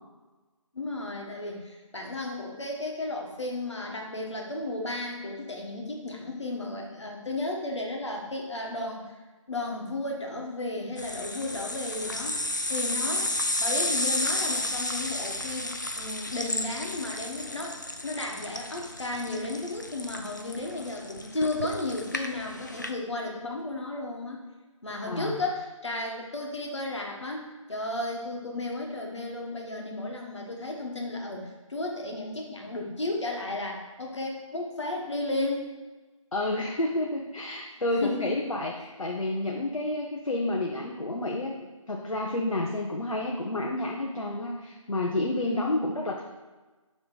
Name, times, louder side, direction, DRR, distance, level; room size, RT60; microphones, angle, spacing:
voice 1, 0.7-9.0 9.5-13.3 13.6-24.4 24.8-35.7 38.0-38.5 45.4-46.0, left 2 dB, 55° left, 0 dB, 1.4 m, -34 dB
sound 1, 11.0-22.9, left 1 dB, 35° left, 0.4 m, -32 dB
voice 2, 25.1-25.4 36.3-41.5 41.9-46.2, left 2 dB, 80° left, 0 dB, 0.9 m, -30 dB
7.5 x 3.4 x 4.8 m, 1.2 s
figure-of-eight pair, 170°, 17 cm